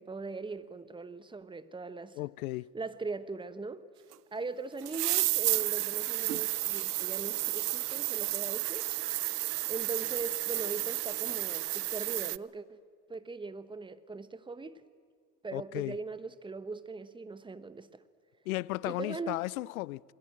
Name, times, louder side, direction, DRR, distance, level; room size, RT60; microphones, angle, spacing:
voice 1, 0.0-2.2 2.7-3.8 4.3-8.9 9.7-12.8 13.1-14.8 15.4-18.0 18.8-19.4, right 3 dB, 10° right, 1.0 m, -40 dB
voice 2, 2.2-2.7 15.5-15.9 18.5-20.0, left 19 dB, 65° left, 0.6 m, -35 dB
sound 1, 4.1-4.2 4.8-12.4, right 15 dB, 80° right, 0.6 m, -32 dB
27.5 x 20.5 x 8.8 m
hypercardioid pair, 90°, 46 cm